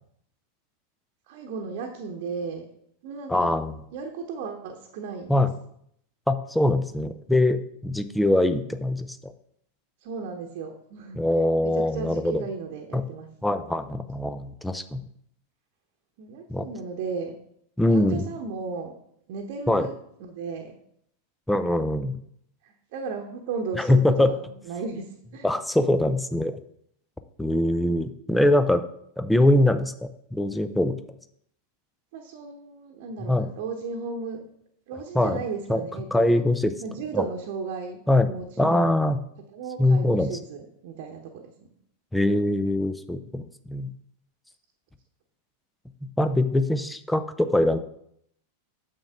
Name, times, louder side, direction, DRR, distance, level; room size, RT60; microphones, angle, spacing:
voice 1, 1.3-2.7 3.0-3.5 3.9-5.4 10.0-11.2 11.6-13.3 16.2-17.4 17.9-18.9 19.3-19.9 20.2-20.8 22.6-24.4 24.7-25.5 32.1-34.4 34.9-36.4 36.8-38.9 39.5-41.4, right 5 dB, 50° right, 1 dB, 1.1 m, -35 dB
voice 2, 3.3-3.8 5.3-5.5 6.3-7.6 7.8-9.3 11.1-12.4 12.9-13.0 13.4-15.0 16.5-16.7 17.8-18.3 19.7-19.9 21.5-22.2 23.8-24.3 25.4-26.6 27.4-28.8 29.2-31.0 33.3-33.5 35.1-35.4 35.7-35.8 36.1-36.7 37.1-37.2 38.1-39.2 39.8-40.3 42.1-43.9 46.2-47.8, left 1 dB, 5° left, 10 dB, 0.6 m, -23 dB
8.8 x 7.2 x 3.6 m, 0.70 s
figure-of-eight pair, 90°, 0 cm